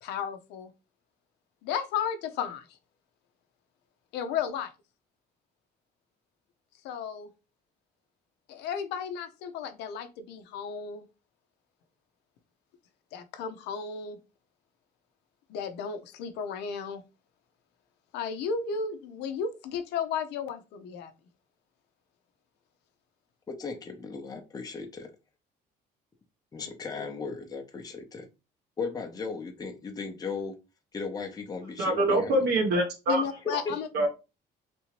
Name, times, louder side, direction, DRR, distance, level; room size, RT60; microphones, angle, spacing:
voice 1, 0.0-0.7 1.6-2.8 4.1-4.7 6.8-7.3 8.5-11.1 13.1-14.2 15.5-17.0 18.1-21.1 26.6-26.7 27.0-27.1 33.1-33.9, left 7 dB, 90° left, 0.6 m, -34 dB
voice 2, 23.5-25.1 26.5-28.3 28.8-30.6 30.9-32.3 33.4-33.5, left 5 dB, 20° left, 0.7 m, -36 dB
voice 3, 31.8-33.2 33.5-33.6 33.9-34.1, right 1 dB, 75° right, 1.2 m, -25 dB
3.4 x 2.8 x 2.9 m
cardioid pair, 110°, 17 cm